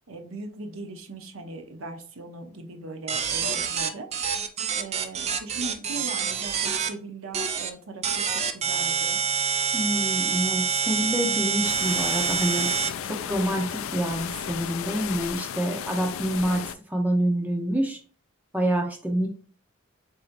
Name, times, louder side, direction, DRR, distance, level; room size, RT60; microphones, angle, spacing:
voice 1, 0.1-4.1 4.7-9.2, right 3 dB, 80° right, 5 dB, 0.8 m, -39 dB
sound 1, 3.1-6.9 7.3-7.7 8.0-12.9, right 6 dB, 30° right, 0.4 m, -26 dB
voice 2, 9.7-16.6 16.9-18.0 18.5-19.3, equal, 10° right, 2 dB, 0.8 m, -27 dB
sound 2, 11.6-16.7, left 9 dB, 75° left, 0.3 m, -34 dB
7.3 x 2.8 x 2.6 m, 0.43 s
head